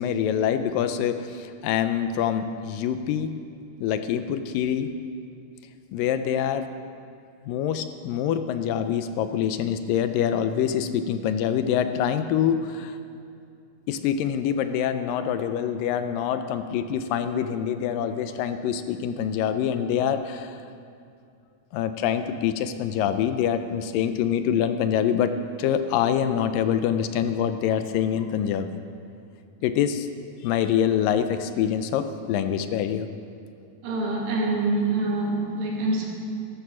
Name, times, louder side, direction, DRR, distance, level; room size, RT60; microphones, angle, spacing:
voice 1, 0.0-3.3 3.8-4.9 5.9-6.7 7.5-13.0 13.9-20.6 21.7-28.8 29.6-30.1 30.4-33.1, left 9 dB, 80° left, 9 dB, 2.3 m, -25 dB
voice 2, 33.8-36.0, right 2 dB, 80° right, -2 dB, 4.1 m, -25 dB
13.5 x 13.0 x 6.2 m, 2.5 s
omnidirectional pair, 4.1 m